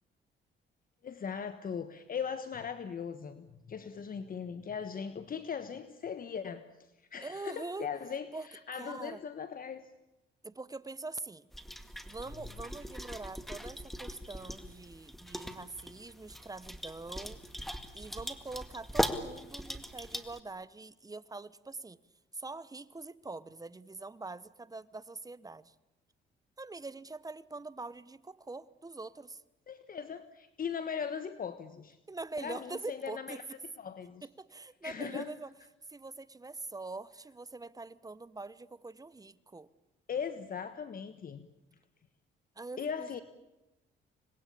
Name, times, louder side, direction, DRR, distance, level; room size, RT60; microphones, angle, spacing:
voice 1, 1.0-6.7 7.1-9.9 29.7-32.0 32.4-33.4 33.8-34.2 34.8-35.3 40.1-41.5 42.8-43.2, left 7 dB, 45° left, 11 dB, 1.3 m, -39 dB
voice 2, 7.2-7.9 8.3-8.5 8.7-9.2 10.4-11.5 12.0-17.4 17.9-22.0 22.3-25.7 26.6-29.4 32.1-33.6 34.2-35.5 35.9-39.7 42.6-43.1, right 3 dB, 20° right, 18 dB, 1.0 m, -44 dB
sound 1, 11.5-20.4, equal, ahead, 1.9 m, -39 dB
26.0 x 21.5 x 8.5 m, 0.97 s
cardioid pair, 90°, 20 cm